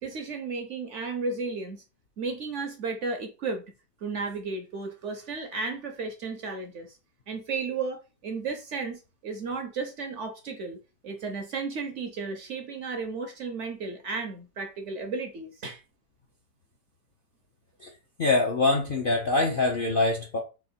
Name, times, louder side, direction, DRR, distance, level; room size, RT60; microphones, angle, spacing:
voice 1, 0.0-1.8 2.2-3.6 4.0-7.0 7.3-10.8 11.0-15.8, right 4 dB, 65° right, 0.7 m, -34 dB
voice 2, 18.2-20.4, left 3 dB, 65° left, 0.5 m, -24 dB
3.6 x 2.9 x 4.2 m
omnidirectional pair, 1.8 m